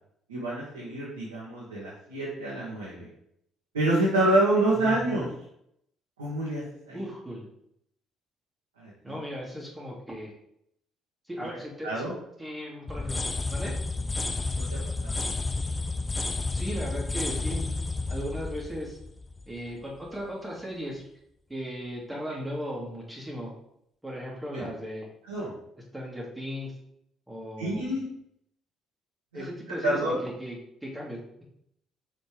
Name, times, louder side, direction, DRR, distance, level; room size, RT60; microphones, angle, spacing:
voice 1, 0.3-3.1 3.7-5.3 6.2-7.0 8.8-9.2 11.8-12.1 15.0-15.3 24.5-24.6 25.3-25.5 27.6-28.0 29.3-29.4 29.8-30.2, right 1 dB, 90° right, -8 dB, 1.6 m, -27 dB
voice 2, 4.7-5.1 6.9-7.5 9.0-10.3 11.3-12.1 12.4-13.3 13.5-13.8 16.5-17.7 18.1-19.0 19.5-21.0 21.5-23.5 24.0-25.1 25.9-26.7 27.3-27.9 29.3-31.4, equal, 10° right, -3 dB, 2.2 m, -37 dB
sound 1, 12.9-19.7, left 3 dB, 25° left, 0.7 m, -31 dB
5.3 x 4.4 x 5.0 m, 0.74 s
hypercardioid pair, 50°, 0 cm